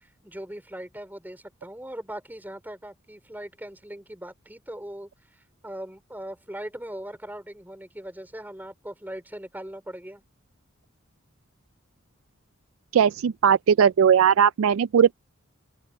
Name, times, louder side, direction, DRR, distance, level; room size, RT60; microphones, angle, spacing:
voice 1, 0.0-5.1 5.6-10.2, right 1 dB, 10° right, 4.9 m, -39 dB
voice 2, 12.9-15.1, right 7 dB, 75° right, 0.3 m, -19 dB
open air
head